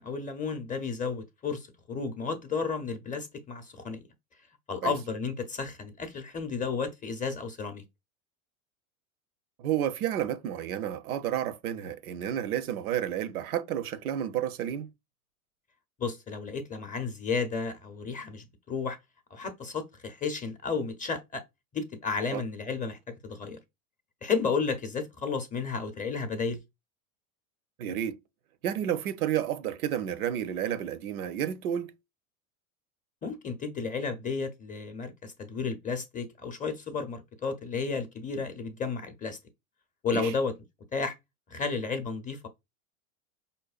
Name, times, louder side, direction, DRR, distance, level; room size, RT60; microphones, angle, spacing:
voice 1, 0.0-4.0 4.7-7.8 16.0-19.0 19.3-21.4 21.7-23.6 24.2-26.6 33.2-39.4 40.0-40.5 40.9-41.1 41.5-42.5, left 5 dB, 20° left, 0.6 m, -32 dB
voice 2, 9.6-14.9 22.3-22.4 27.8-28.2 28.6-31.9 40.1-40.3, right 10 dB, 90° right, 0.6 m, -31 dB
5.1 x 2.2 x 2.4 m
hypercardioid pair, 105°, 42 cm